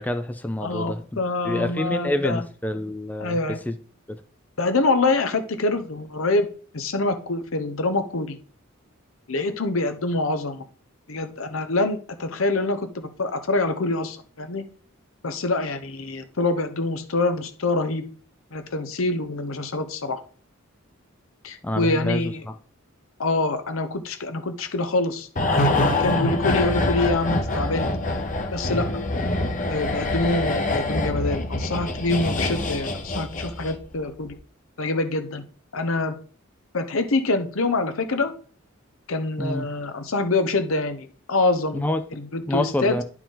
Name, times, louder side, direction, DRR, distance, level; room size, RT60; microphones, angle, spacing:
voice 1, 0.0-3.4 3.7-3.8 4.1-4.2 21.6-22.3 39.4-39.7 41.7-42.0 42.5-43.0, left 1 dB, 10° left, 8 dB, 0.4 m, -27 dB
voice 2, 0.6-2.4 3.2-3.6 4.6-6.5 6.7-8.4 9.3-10.6 11.1-14.6 15.2-18.0 18.5-20.2 21.4-22.4 23.2-27.9 28.5-28.9 29.7-34.3 34.8-35.4 35.7-36.2 36.7-38.3 39.1-41.9 42.1-43.0, left 2 dB, 85° left, 9 dB, 0.9 m, -25 dB
sound 1, 25.4-33.9 34.2-34.3, left 2 dB, 40° left, 0.9 m, -25 dB
10.0 x 4.5 x 3.9 m, 0.43 s
head